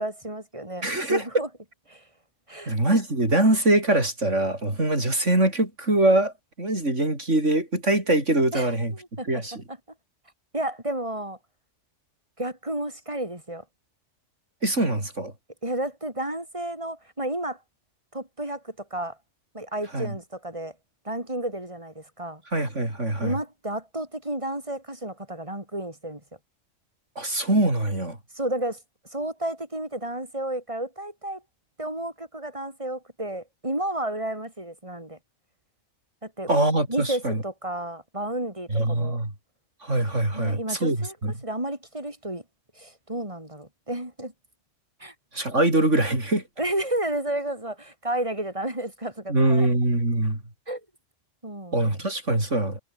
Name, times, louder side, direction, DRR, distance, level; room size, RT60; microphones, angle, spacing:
voice 1, 0.0-1.5 1.9-2.0 2.5-2.8 8.5-9.4 10.5-11.4 12.4-13.6 15.6-17.6 18.1-19.2 19.5-20.7 21.1-22.4 23.2-26.2 28.4-28.8 29.1-31.4 31.8-35.2 36.2-36.5 36.9-39.2 40.3-41.2 41.4-42.4 42.8-44.3 45.0-45.1 46.6-49.7 50.7-50.8 51.4-52.0, right 1 dB, 25° right, 6.9 m, -32 dB
voice 2, 0.8-1.4 2.7-6.3 6.6-8.9 9.3-9.5 14.6-15.3 19.9-20.1 22.5-23.3 27.2-28.2 36.5-37.4 38.7-39.3 39.8-41.3 45.3-46.4 49.3-50.4 51.7-52.8, right 1 dB, 80° right, 7.1 m, -23 dB
omnidirectional pair, 1.2 m